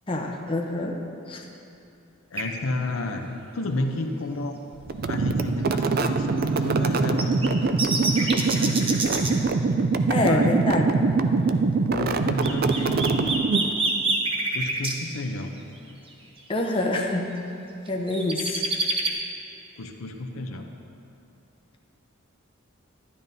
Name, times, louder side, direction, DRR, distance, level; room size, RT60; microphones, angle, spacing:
voice 1, 0.1-1.0 1.3-1.4 10.1-10.9 16.5-17.3 17.9-18.7, left 2 dB, 25° left, 0 dB, 0.7 m, -26 dB
voice 2, 2.3-4.6 5.1-9.4 10.1-10.7 11.8-13.4 14.5-15.5 19.8-20.7, left 2 dB, 80° left, 4 dB, 0.7 m, -32 dB
sound 1, 2.3-2.4 6.4-6.5 7.2-9.3 12.4-14.9 16.1-16.2 16.6-16.7 17.9-19.1, right 3 dB, 25° right, 0.8 m, -26 dB
sound 2, 4.9-13.9, right 4 dB, 45° right, 0.4 m, -23 dB
12.5 x 10.5 x 2.7 m, 2.7 s
head